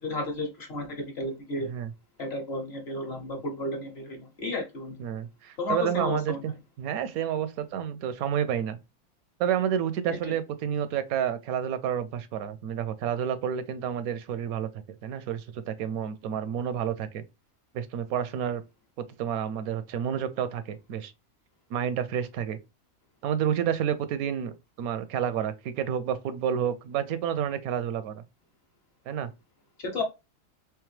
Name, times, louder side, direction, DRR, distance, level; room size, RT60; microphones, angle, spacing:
voice 1, 0.0-1.7 2.2-5.0 5.6-6.4 29.8-30.0, left 2 dB, 50° left, 1.1 m, -32 dB
voice 2, 1.6-1.9 5.0-8.8 9.4-14.7 15.0-17.2 17.7-18.6 19.2-21.1 21.7-22.6 23.2-24.5 24.8-28.2 29.1-29.3, right 9 dB, 80° right, 1.0 m, -30 dB
3.5 x 3.2 x 3.1 m
omnidirectional pair, 1.5 m